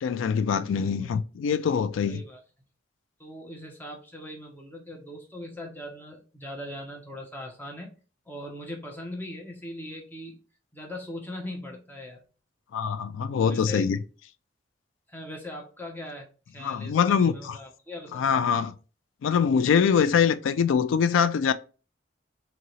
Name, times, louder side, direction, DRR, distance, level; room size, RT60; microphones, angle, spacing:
voice 1, 0.0-2.2 12.7-14.0 16.6-17.6 18.1-18.7 19.2-21.5, left 7 dB, 85° left, 0.3 m, -24 dB
voice 2, 0.7-1.2 2.1-2.4 3.2-7.9 8.3-10.4 10.7-12.2 13.5-13.9 15.1-18.3, left 1 dB, 10° left, 0.7 m, -40 dB
2.8 x 2.7 x 3.0 m
head